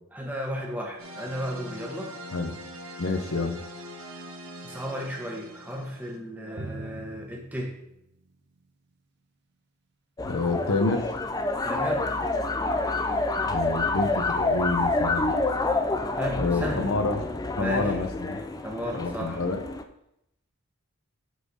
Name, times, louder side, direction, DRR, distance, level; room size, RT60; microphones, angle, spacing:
voice 1, 0.1-2.1 4.6-7.7 11.6-12.1 16.2-16.9 17.6-18.0 18.6-19.4, equal, 5° right, 0 dB, 1.2 m, -34 dB
sound 1, 1.0-6.2, equal, 75° right, 1.5 m, -42 dB
voice 2, 3.0-3.6 10.2-11.1 13.4-15.3 16.3-17.2 17.6-18.4 18.9-19.6, left 3 dB, 75° left, 4 dB, 0.7 m, -28 dB
Drum, 6.6-9.0, right 2 dB, 50° right, 1.0 m, -43 dB
sound 2, 10.2-19.8, left 2 dB, 15° left, 0.4 m, -28 dB
8.0 x 4.4 x 4.8 m, 0.81 s
head